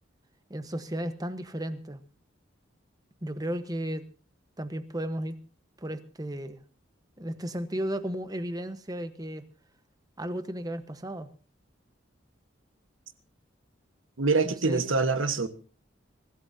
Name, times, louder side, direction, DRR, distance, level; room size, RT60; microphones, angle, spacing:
voice 1, 0.5-2.0 3.2-4.0 4.6-5.3 5.8-6.6 7.2-9.4 10.2-11.3 14.4-14.9, right 1 dB, 20° right, 11 dB, 1.1 m, -34 dB
voice 2, 14.2-15.5, right 4 dB, 90° right, 11 dB, 1.4 m, -25 dB
24.5 x 15.5 x 2.8 m, 0.35 s
head